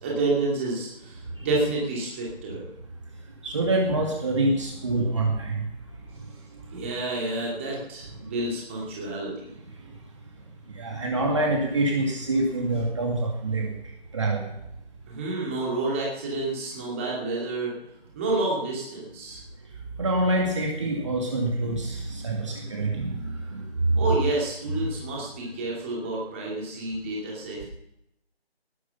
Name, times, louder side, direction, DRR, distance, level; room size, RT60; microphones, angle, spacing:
voice 1, 0.0-2.6 6.7-9.5 15.1-17.7 18.1-19.4 24.0-27.6, right 2 dB, 10° right, -4 dB, 2.6 m, -29 dB
voice 2, 3.4-5.6 10.8-13.7 14.1-14.4 20.0-23.6 23.9-24.0 24.7-24.9, right 2 dB, 30° right, 0 dB, 2.3 m, -26 dB
18.5 x 11.5 x 5.8 m, 0.84 s
figure-of-eight pair, 170°, 32 cm